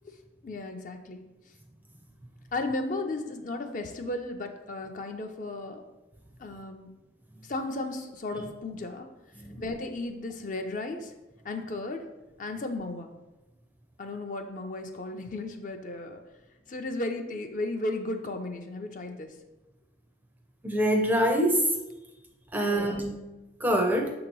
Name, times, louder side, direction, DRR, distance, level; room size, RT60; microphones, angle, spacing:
voice 1, 0.4-1.3 2.5-5.8 6.4-7.0 7.4-9.1 9.6-11.1 11.4-12.1 12.4-13.1 14.0-16.2 16.7-19.3 22.6-23.1, left 2 dB, 40° left, 5 dB, 0.5 m, -35 dB
voice 2, 20.6-21.5 22.5-23.1 23.6-24.1, right 1 dB, 10° right, 3 dB, 0.5 m, -25 dB
6.5 x 2.9 x 5.2 m, 1.0 s
head